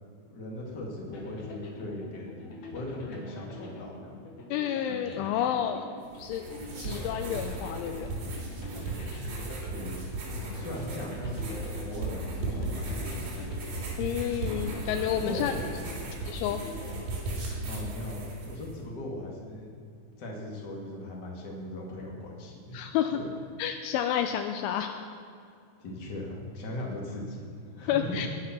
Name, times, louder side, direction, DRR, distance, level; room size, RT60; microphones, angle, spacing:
voice 1, 0.3-2.4 2.7-4.4 9.7-10.0 10.5-13.4 15.1-15.6 17.7-19.8 20.2-22.7 23.1-23.3 25.8-28.2, left 1 dB, 35° left, -2 dB, 1.7 m, -39 dB
sound 1, 1.1-17.7, left 2 dB, 55° left, 2.2 m, -45 dB
voice 2, 4.5-5.9 6.1-6.4 6.8-8.1 14.0-15.5 16.3-16.6 22.7-23.2 23.6-24.9 27.9-28.3, left 10 dB, 85° left, 6 dB, 3.0 m, -30 dB
sound 2, 6.0-18.7, right 2 dB, 50° right, 4.4 m, -36 dB
20.0 x 7.5 x 6.0 m, 2.4 s
omnidirectional pair, 5.6 m